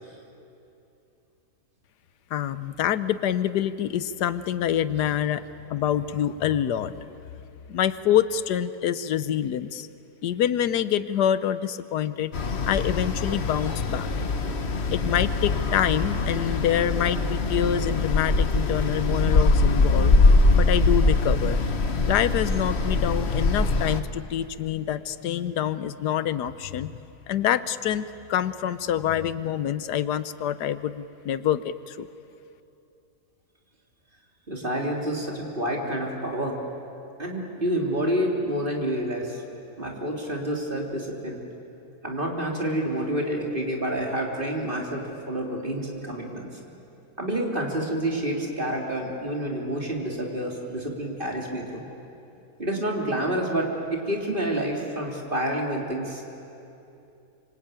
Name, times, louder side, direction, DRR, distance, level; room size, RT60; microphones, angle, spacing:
voice 1, 2.3-5.4 5.7-7.2 7.7-9.9 10.2-12.3 12.7-14.1 14.9-20.1 20.5-21.6 22.1-26.9 27.3-32.1, left 10 dB, 80° left, 14 dB, 1.4 m, -26 dB
sound 1, 12.3-24.0, left 3 dB, 45° left, 1.4 m, -22 dB
voice 2, 34.5-36.6 37.2-39.4 39.8-41.4 42.0-46.5 47.2-51.8 52.6-56.2, right 1 dB, 30° right, 0 dB, 3.2 m, -28 dB
25.5 x 24.5 x 9.0 m, 2.8 s
omnidirectional pair, 1.7 m